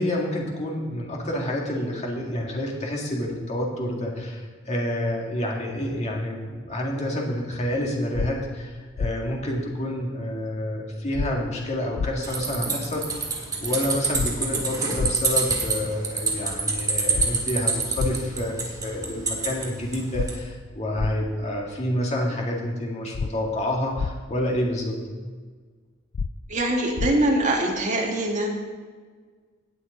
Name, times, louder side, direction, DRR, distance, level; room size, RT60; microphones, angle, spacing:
voice 1, 0.0-13.3 13.6-25.0, left 1 dB, 35° left, -1 dB, 2.0 m, -28 dB
sound 1, 8.1-8.3 9.0-9.1 11.1-11.3 12.0-12.1 14.1-14.3 15.0-15.1 17.1-17.3 18.0-18.1 20.1-20.3 21.0-21.1 23.1-23.3 24.0-24.1 26.1-26.3 27.0-27.1, left 5 dB, 60° left, 0.4 m, -26 dB
sound 2, 12.2-20.4, right 4 dB, 20° right, 1.8 m, -27 dB
voice 2, 26.5-28.5, right 1 dB, 40° right, -1 dB, 1.9 m, -23 dB
18.0 x 6.3 x 3.9 m, 1.5 s
head